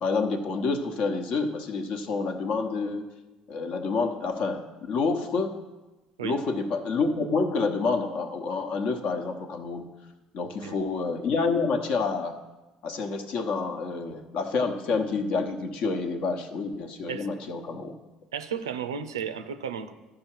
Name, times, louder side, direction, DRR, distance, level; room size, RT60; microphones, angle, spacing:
voice 1, 0.0-3.1 3.5-5.6 6.2-9.9 10.3-12.4 12.8-18.0, left 4 dB, 60° left, 6 dB, 0.9 m, -28 dB
voice 2, 18.3-19.9, right 7 dB, 85° right, 10 dB, 0.5 m, -33 dB
13.0 x 5.0 x 4.5 m, 1.1 s
hypercardioid pair, 60°, 2 cm